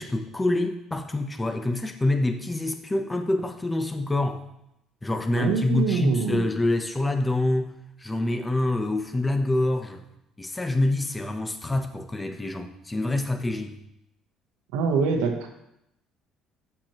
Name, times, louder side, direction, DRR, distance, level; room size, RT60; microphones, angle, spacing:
voice 1, 0.0-4.4 5.0-7.7 8.0-10.0 10.4-13.8, left 2 dB, 15° left, 7 dB, 0.7 m, -26 dB
voice 2, 5.4-6.5 14.7-15.5, right 5 dB, 85° right, 5 dB, 0.9 m, -25 dB
7.5 x 5.9 x 2.9 m, 0.82 s
supercardioid pair, 90°, 0 cm